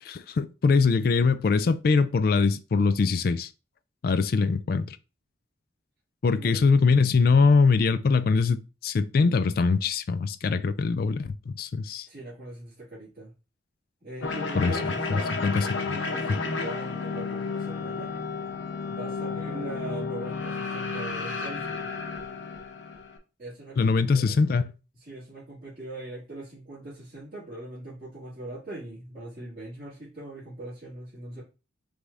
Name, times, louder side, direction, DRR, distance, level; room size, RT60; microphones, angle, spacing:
voice 1, 0.0-3.5 4.0-5.0 6.2-12.1 14.5-14.8 15.1-15.7 23.8-24.7, left 4 dB, 50° left, 0.3 m, -23 dB
voice 2, 6.3-6.6 12.1-13.3 14.0-18.1 18.8-21.9 23.4-24.3 24.9-31.4, right 2 dB, 50° right, 2.1 m, -41 dB
sound 1, 14.2-23.2, left 4 dB, 80° left, 0.8 m, -32 dB
4.8 x 2.7 x 3.4 m
head